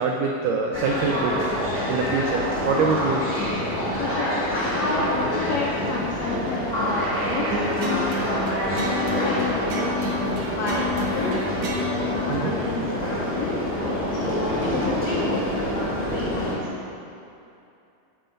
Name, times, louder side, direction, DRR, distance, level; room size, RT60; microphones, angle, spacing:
voice 1, 0.0-1.6 1.9-3.2 12.3-12.6, right 4 dB, 85° right, 1 dB, 1.8 m, -24 dB
sound 1, 0.7-16.6, equal, 10° right, 0.7 m, -27 dB
voice 2, 4.0-8.6 8.9-10.1 10.5-11.3 12.1-15.4 15.7-16.8, left 3 dB, 80° left, -4 dB, 1.5 m, -31 dB
sound 2, 7.5-14.0, left 2 dB, 65° right, 1.6 m, -30 dB
10.5 x 8.1 x 5.2 m, 2.7 s
omnidirectional pair, 4.5 m